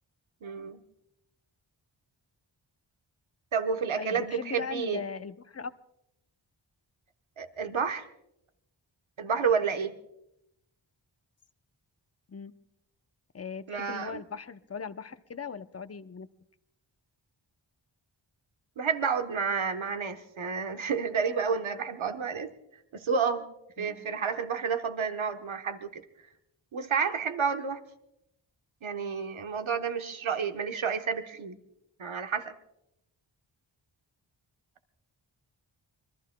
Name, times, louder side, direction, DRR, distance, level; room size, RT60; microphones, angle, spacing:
voice 1, 0.4-0.8 3.5-5.0 7.4-8.1 9.2-9.9 13.7-14.2 18.8-22.5 22.9-23.4 23.8-26.0 26.7-27.8 28.8-31.6 32.0-32.5, right 6 dB, 85° right, 6 dB, 1.1 m, -30 dB
voice 2, 4.0-5.7 12.3-12.5 13.3-16.3 23.8-24.1, left 6 dB, 30° left, 12 dB, 0.7 m, -39 dB
26.0 x 21.5 x 2.2 m, 0.81 s
cardioid pair, 45°, 47 cm